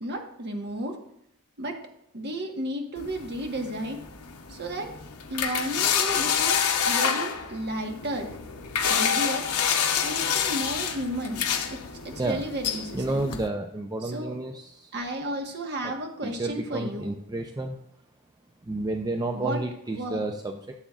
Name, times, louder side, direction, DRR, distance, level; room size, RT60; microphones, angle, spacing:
voice 1, 0.0-1.0 1.6-1.8 2.1-4.0 4.5-4.9 5.3-6.6 6.9-8.3 8.8-9.4 10.0-11.4 11.7-11.8 12.0-13.3 14.0-14.3 14.9-17.1 19.3-19.6 20.0-20.3, right 1 dB, 50° right, 2 dB, 1.3 m, -33 dB
sound 1, 3.0-13.5, left 7 dB, 85° left, 0.9 m, -28 dB
voice 2, 12.9-14.9 15.8-15.9 16.2-17.8 18.6-20.7, right 2 dB, 20° right, 4 dB, 0.5 m, -31 dB
14.0 x 7.2 x 2.4 m, 0.74 s
head